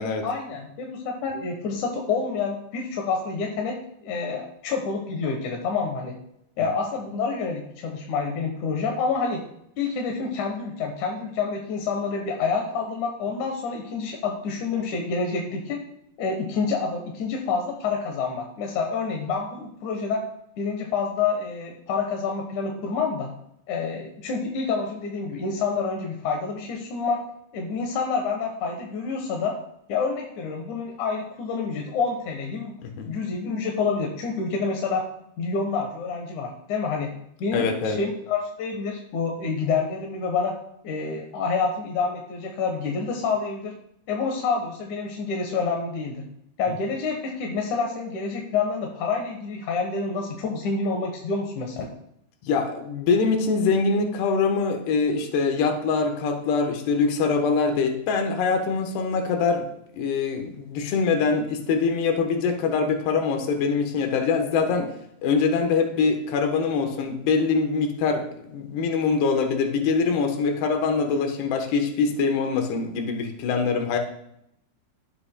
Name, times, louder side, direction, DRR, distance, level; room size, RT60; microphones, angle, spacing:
voice 1, 0.2-3.8 4.0-6.1 6.6-9.4 9.8-15.8 16.2-20.2 20.6-23.3 23.7-27.2 27.5-29.5 29.9-32.7 33.0-35.0 35.4-37.1 37.4-40.5 40.8-43.7 44.1-46.2 46.6-51.9, left 4 dB, 65° left, 1 dB, 2.1 m, -28 dB
voice 2, 32.8-33.2 37.5-38.0 52.4-59.7 60.0-64.9 65.2-74.0, left 5 dB, 85° left, 4 dB, 3.2 m, -24 dB
17.0 x 7.7 x 2.2 m, 0.76 s
omnidirectional pair, 4.6 m